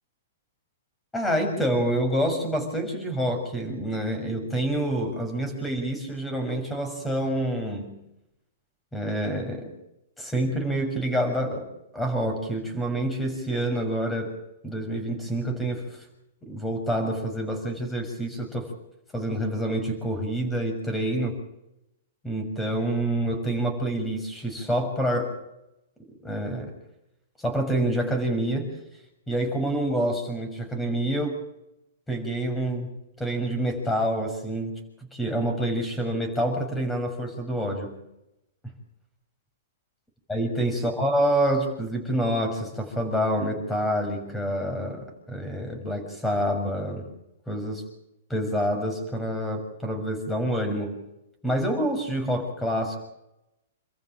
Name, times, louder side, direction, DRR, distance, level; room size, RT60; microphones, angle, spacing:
voice 1, 1.1-7.9 8.9-9.7 10.2-11.7 11.9-14.3 14.6-16.1 16.4-18.7 19.1-21.3 22.2-25.3 26.2-26.7 27.4-28.7 29.3-31.4 32.1-32.9 33.2-34.8 35.1-37.9 40.3-47.1 47.5-47.8 48.3-51.0 51.4-53.0, right 1 dB, 10° left, 5 dB, 6.6 m, -27 dB
29.0 x 14.5 x 7.6 m, 0.85 s
hypercardioid pair, 140°, 0 cm